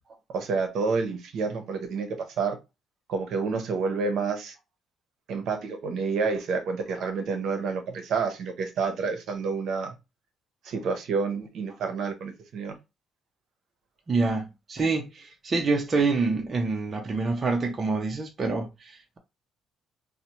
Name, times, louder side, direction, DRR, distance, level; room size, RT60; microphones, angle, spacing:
voice 1, 0.3-2.6 3.1-4.5 5.3-9.9 10.6-12.7, right 4 dB, 60° right, 0.7 m, -29 dB
voice 2, 14.1-19.2, right 3 dB, 25° right, 0.4 m, -27 dB
4.1 x 2.0 x 2.9 m
cardioid pair, 170°, 0 cm